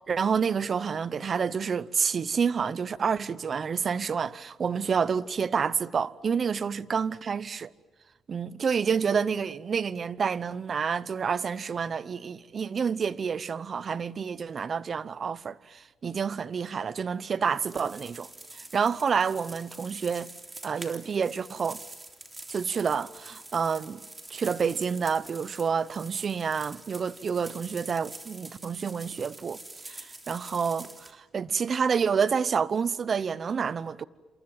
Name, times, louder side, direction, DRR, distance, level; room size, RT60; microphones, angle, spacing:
voice 1, 0.1-7.7 8.3-20.3 20.6-21.8 22.5-24.0 24.3-34.0, right 6 dB, 45° right, 0.9 m, -29 dB
sound 1, 17.4-31.1, right 2 dB, 20° right, 3.4 m, -46 dB
28.0 x 27.5 x 7.5 m
cardioid pair, 90°, 0 cm